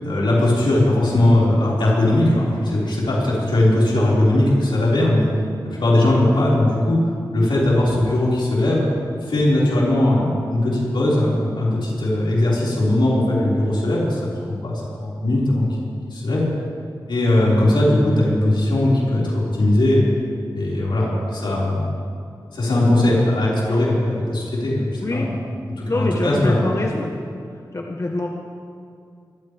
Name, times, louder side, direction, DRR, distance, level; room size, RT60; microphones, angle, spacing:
voice 1, 0.0-5.3 5.6-7.0 7.3-14.2 14.5-15.7 16.1-16.5 17.1-20.0 20.5-21.8 22.5-25.3 25.8-26.6, left 1 dB, 85° left, -7 dB, 5.3 m, -19 dB
voice 2, 25.0-25.4 25.9-27.1 27.7-28.3, left 2 dB, 40° left, 0 dB, 1.3 m, -24 dB
24.5 x 15.0 x 3.6 m, 2.3 s
wide cardioid pair, 70°, 8 cm